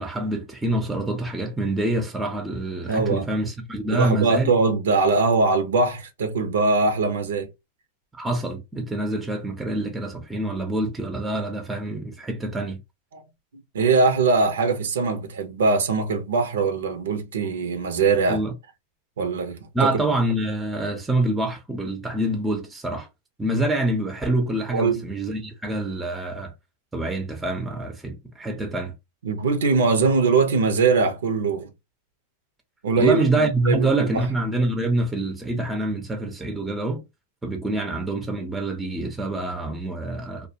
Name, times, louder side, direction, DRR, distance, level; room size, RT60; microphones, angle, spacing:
voice 1, 0.0-4.5 8.1-12.8 18.3-18.5 19.7-23.1 23.4-26.5 26.9-28.9 33.0-37.0 37.4-40.5, right 1 dB, 10° right, 0.6 m, -26 dB
voice 2, 2.9-3.3 3.9-7.5 13.1-13.2 13.7-18.4 19.2-20.0 24.7-25.0 29.2-31.7 32.8-34.2, right 4 dB, 85° right, 0.6 m, -21 dB
2.3 x 2.2 x 2.7 m
hypercardioid pair, 115°, 0 cm